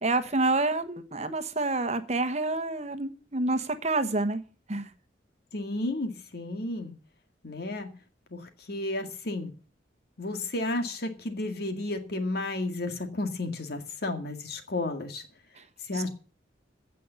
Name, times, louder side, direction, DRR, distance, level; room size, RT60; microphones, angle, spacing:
voice 1, 0.0-4.4 4.7-4.9 15.9-16.1, right 2 dB, 35° right, 1.2 m, -28 dB
voice 2, 5.5-6.9 7.4-7.9 8.3-9.5 10.2-15.3 15.8-16.1, left 2 dB, 60° left, 2.0 m, -32 dB
16.0 x 5.5 x 8.2 m
head